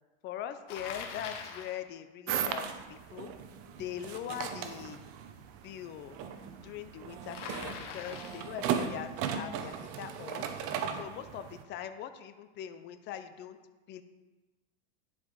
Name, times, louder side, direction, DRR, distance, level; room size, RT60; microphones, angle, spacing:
voice 1, 0.2-3.3 3.8-5.0 5.6-6.2 6.6-10.5 11.0-13.6 13.9-14.0, left 10 dB, 30° left, 10 dB, 0.5 m, -42 dB
Bicycle, 0.7-1.8 7.3-8.6, left 5 dB, 90° left, 1.2 m, -42 dB
sound 1, 2.3-11.6, right 8 dB, 40° right, 0.8 m, -37 dB
9.9 x 5.0 x 3.9 m, 1.2 s
supercardioid pair, 125°, 35 cm